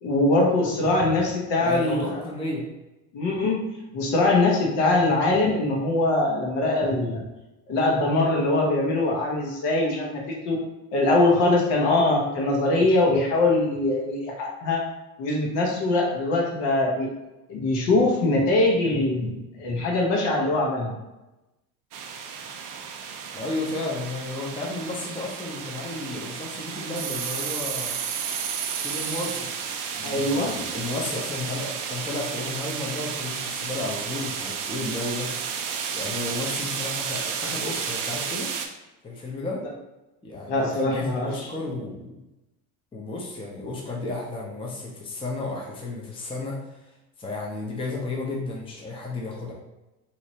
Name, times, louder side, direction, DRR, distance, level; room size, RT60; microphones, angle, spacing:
voice 1, 0.0-2.2 3.1-3.7 3.9-7.2 7.7-10.6 10.9-14.8 15.2-17.1 17.5-21.0 30.0-30.6 40.5-41.5, left 2 dB, 60° left, -1 dB, 1.1 m, -22 dB
voice 2, 1.6-2.6 23.3-28.0 28.8-29.5 29.9-35.5 35.9-38.5 39.0-39.6 40.2-42.1 42.9-46.8 47.2-49.5, left 2 dB, 10° left, -3 dB, 0.7 m, -33 dB
sound 1, 21.9-38.7, right 6 dB, 45° right, 0.5 m, -32 dB
3.1 x 2.7 x 2.8 m, 1.0 s
hypercardioid pair, 85°, 47 cm